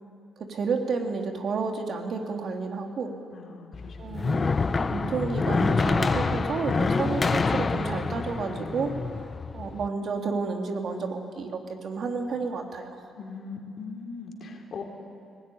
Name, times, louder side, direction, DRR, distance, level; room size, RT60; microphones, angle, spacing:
voice 1, 0.4-3.1 4.0-8.9 9.5-12.9, right 4 dB, 55° right, 3 dB, 2.8 m, -31 dB
voice 2, 3.3-4.3 13.2-14.8, left 4 dB, 55° left, 2 dB, 3.3 m, -40 dB
sound 1, 3.7-9.9, left 4 dB, 30° left, 0.8 m, -27 dB
19.5 x 18.5 x 9.9 m, 2.4 s
cardioid pair, 90°, 0 cm